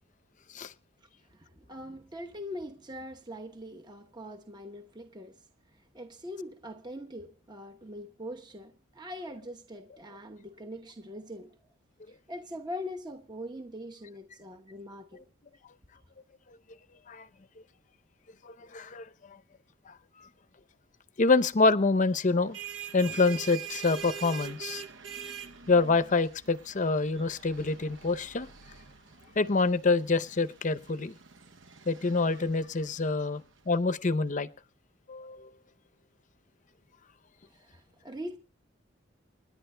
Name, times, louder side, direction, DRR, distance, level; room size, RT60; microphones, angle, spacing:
voice 1, 1.3-5.5 5.7-11.6 12.1-15.2 37.5-38.4, equal, 20° right, 1.0 m, -42 dB
voice 2, 18.4-19.0 19.9-20.0 21.2-22.6 22.9-24.8 25.7-28.5 29.4-31.1 31.9-33.4 33.7-34.5 35.1-35.5, left 3 dB, 40° left, 0.7 m, -26 dB
sound 1, 22.3-33.6, right 8 dB, 70° right, 1.0 m, -45 dB
28.5 x 11.0 x 2.2 m
head